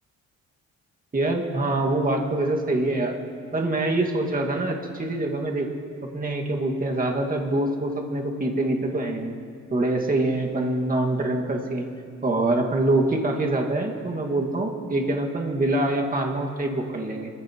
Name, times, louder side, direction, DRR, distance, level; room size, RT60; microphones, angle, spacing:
voice 1, 1.1-3.2 3.5-5.7 6.1-9.3 9.7-11.9 12.2-17.3, right 2 dB, 30° right, 0 dB, 2.0 m, -25 dB
25.0 x 15.0 x 3.1 m, 2.4 s
cardioid pair, 90°, 30 cm